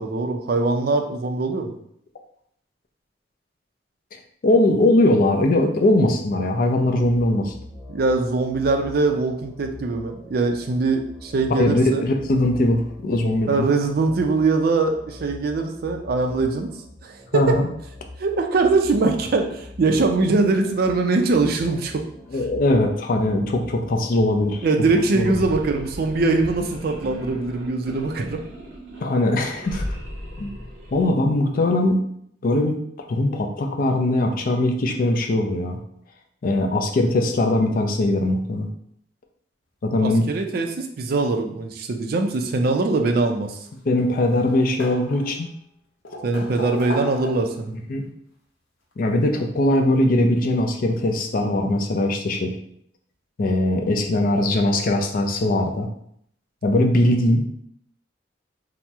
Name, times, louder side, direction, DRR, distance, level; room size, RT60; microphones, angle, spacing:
voice 1, 0.0-1.7 7.9-12.0 13.5-16.7 17.0-17.6 18.2-22.0 24.6-28.4 40.0-43.6 46.2-47.7, right 3 dB, 55° right, 4 dB, 0.4 m, -22 dB
voice 2, 4.4-7.5 11.6-13.7 17.3-17.7 22.3-24.7 25.1-25.4 29.0-29.8 30.4-30.5 30.9-32.0 32.4-32.8 33.1-35.8 36.4-38.7 39.8-40.3 43.9-45.5 47.9-48.0 49.0-52.5 53.4-55.9 56.6-57.5, left 1 dB, 50° left, 4 dB, 0.4 m, -20 dB
sound 1, 7.0-26.6, left 1 dB, 5° right, 0.6 m, -43 dB
sound 2, 25.1-31.1, equal, 80° right, 0.7 m, -36 dB
sound 3, 43.4-44.1 44.4-45.5 46.0-47.7 48.9-49.0 50.5-50.6 51.0-51.1, left 1 dB, 80° left, 0.7 m, -35 dB
2.9 x 2.0 x 3.4 m, 0.69 s
head